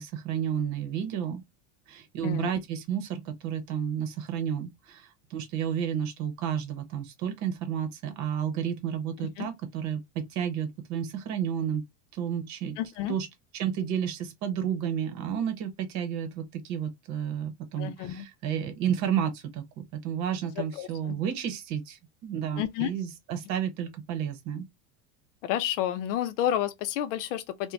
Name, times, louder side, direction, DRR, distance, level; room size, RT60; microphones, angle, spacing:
voice 1, 0.0-1.4 1.9-11.8 12.1-12.8 13.1-13.3 13.5-24.7, right 8 dB, 50° right, 0.8 m, -31 dB
voice 2, 12.8-13.1 17.8-18.3 20.8-21.2 22.6-22.9 25.4-27.7, left 11 dB, 85° left, 0.5 m, -30 dB
2.5 x 2.2 x 3.1 m
cardioid pair, 150°, 36 cm